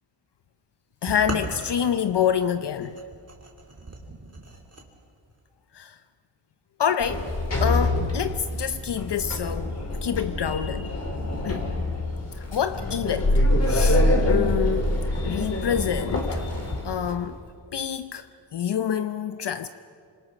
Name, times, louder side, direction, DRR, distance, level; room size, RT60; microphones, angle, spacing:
voice 1, 1.0-3.0 5.7-6.0 6.8-7.3 7.6-10.9 11.4-11.7 12.3-14.9 15.2-16.4 16.8-17.4 17.7-18.3 18.5-19.7, left 8 dB, 60° left, 0.7 m, -27 dB
sound 1, 1.1-4.9, right 2 dB, 30° right, 3.0 m, -37 dB
Sliding door, 7.0-17.1, left 1 dB, 30° left, 3.5 m, -25 dB
27.5 x 26.5 x 6.1 m
wide cardioid pair, 130°, 46 cm